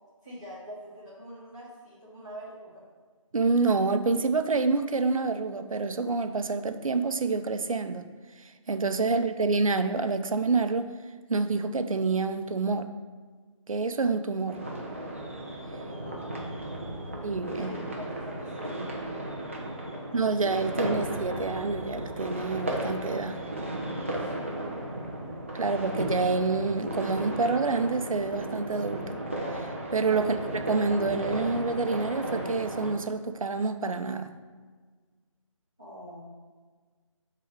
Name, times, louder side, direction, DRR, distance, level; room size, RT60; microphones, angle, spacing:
voice 1, 0.2-2.8 9.1-9.2 16.0-17.1 17.5-20.2 24.3-25.0 35.8-36.2, equal, 10° left, -13 dB, 0.7 m, -45 dB
voice 2, 3.3-8.1 8.4-10.9 11.3-12.9 13.7-14.6 17.2-17.7 20.1-23.4 25.5-29.2 29.5-34.3, right 4 dB, 85° right, 9 dB, 0.6 m, -27 dB
sound 1, 14.5-32.9, right 1 dB, 25° right, 0.6 m, -35 dB
7.6 x 3.9 x 4.9 m, 1.5 s
figure-of-eight pair, 180°, 17 cm